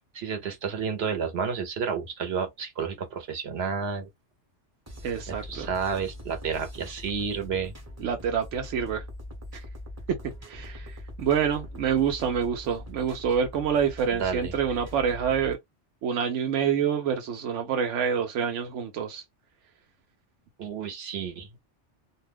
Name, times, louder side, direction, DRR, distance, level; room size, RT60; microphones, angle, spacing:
voice 1, 0.1-4.1 5.5-7.7 14.2-14.5 20.6-21.6, right 6 dB, 65° right, 1.0 m, -31 dB
sound 1, 4.9-15.5, left 1 dB, 15° right, 0.7 m, -42 dB
voice 2, 5.0-5.7 8.0-9.0 9.5-9.6 10.1-10.2 10.4-15.6 16.0-19.2, right 7 dB, 85° right, 0.9 m, -27 dB
2.4 x 2.2 x 3.3 m
omnidirectional pair, 1.2 m